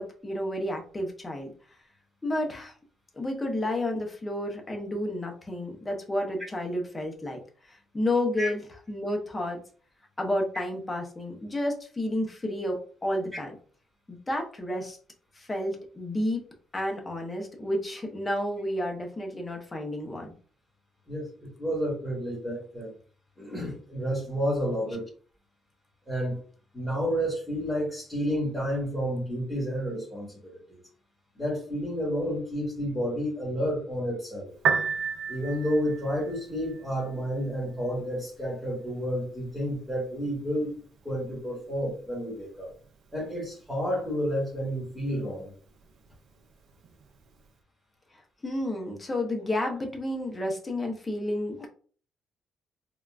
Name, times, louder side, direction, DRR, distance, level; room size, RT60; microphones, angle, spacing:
voice 1, 0.0-1.5 2.2-2.7 3.2-7.4 7.7-9.6 10.2-13.5 14.1-15.0 15.4-16.4 16.7-20.4 48.4-51.7, left 1 dB, 15° left, 2 dB, 0.6 m, -31 dB
voice 2, 21.1-22.9 23.4-25.0 26.1-26.4 26.7-30.4 30.7-30.8 31.3-34.5 35.3-40.7 41.0-42.7 43.1-45.5, equal, ahead, -6 dB, 1.3 m, -30 dB
Piano, 34.5-47.5, right 6 dB, 70° right, 0.4 m, -38 dB
3.6 x 2.1 x 2.3 m, 0.43 s
cardioid pair, 160°, 0 cm